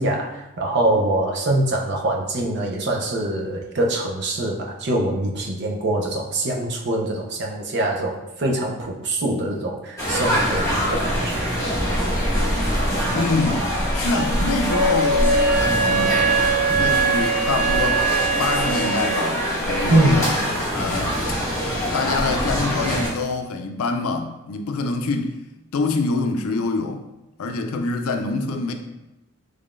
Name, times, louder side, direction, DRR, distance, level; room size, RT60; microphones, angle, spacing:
voice 1, 0.0-11.5 19.9-20.4, right 1 dB, 50° right, 0.5 m, -23 dB
sound 1, 10.0-23.1, equal, 15° left, 1.0 m, -24 dB
voice 2, 13.1-13.6 13.9-16.2 16.8-18.0 18.4-20.3 20.7-21.2 21.9-25.3 25.7-27.0 27.4-28.7, left 3 dB, 85° left, 0.4 m, -25 dB
Wind instrument woodwind instrument, 14.7-19.4, right 4 dB, 55° left, 0.8 m, -22 dB
3.7 x 3.2 x 2.4 m
head